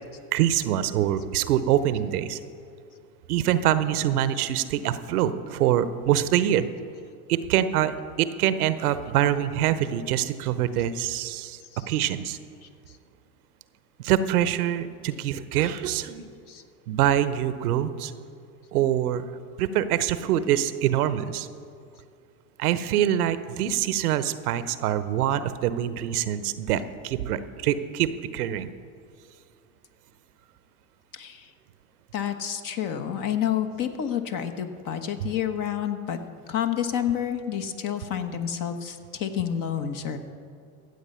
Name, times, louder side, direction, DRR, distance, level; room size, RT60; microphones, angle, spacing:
voice 1, 0.3-2.4 3.3-6.7 7.3-11.6 11.9-12.4 14.0-16.3 16.9-18.1 18.7-19.2 19.6-21.5 22.6-28.7, right 11 dB, 85° right, 13 dB, 0.7 m, -25 dB
voice 2, 31.1-31.5 32.1-36.2 36.5-40.2, left 9 dB, 45° left, 7 dB, 1.2 m, -29 dB
14.5 x 8.0 x 5.5 m, 2.4 s
hypercardioid pair, 85°, 44 cm